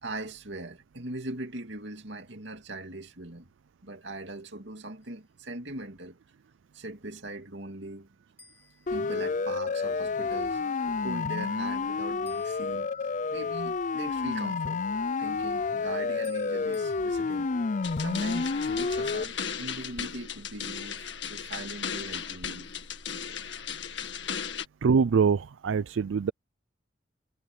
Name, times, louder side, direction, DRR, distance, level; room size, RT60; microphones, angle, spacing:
voice 1, 0.0-3.5 3.8-6.2 6.7-8.1 8.9-14.8 15.2-17.5 18.0-22.7, right 2 dB, 65° right, 2.6 m, -40 dB
sound 1, 5.0-5.4 8.4-9.7 12.3-13.5 16.2-17.0, left 2 dB, 10° left, 4.4 m, -58 dB
Siren, 8.9-19.2, left 4 dB, 40° left, 0.5 m, -30 dB
sound 2, 17.8-24.7, left 7 dB, 65° left, 1.9 m, -36 dB
voice 2, 24.8-26.3, right 5 dB, 80° right, 0.4 m, -24 dB
head